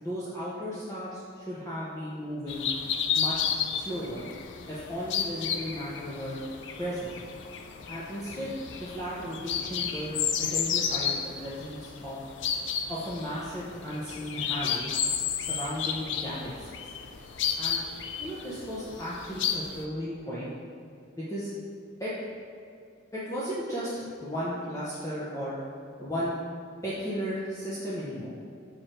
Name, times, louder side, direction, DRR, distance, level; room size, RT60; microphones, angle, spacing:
voice 1, 0.0-2.7 3.1-3.4 3.7-4.3 4.7-6.4 6.8-7.1 7.9-12.2 12.9-14.9 15.4-16.7 17.6-17.8 18.2-20.5 21.1-21.5 22.0-22.1 23.1-23.9 24.2-25.5 26.0-26.4 26.8-28.3, equal, 15° left, -9 dB, 0.8 m, -35 dB
sound 1, 2.5-19.8, left 7 dB, 70° left, 0.5 m, -32 dB
6.2 x 4.9 x 4.4 m, 2.5 s
head